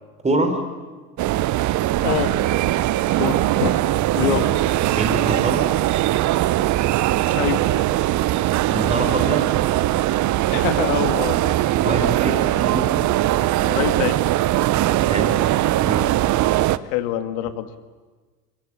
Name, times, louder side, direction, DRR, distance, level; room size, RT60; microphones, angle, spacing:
voice 1, 0.2-0.6 4.1-4.6 4.9-5.7 8.7-9.5 11.7-13.0 14.8-15.5 15.8-16.2, right 2 dB, 15° right, 7 dB, 4.3 m, -25 dB
sound 1, 1.2-16.8, right 15 dB, 40° right, 0.8 m, -20 dB
voice 2, 2.0-2.4 3.2-3.7 4.2-4.5 7.3-7.7 10.5-11.6 13.6-14.2 16.9-17.7, left 13 dB, 60° left, 10 dB, 2.1 m, -25 dB
24.5 x 22.0 x 9.1 m, 1.3 s
hypercardioid pair, 85°, 47 cm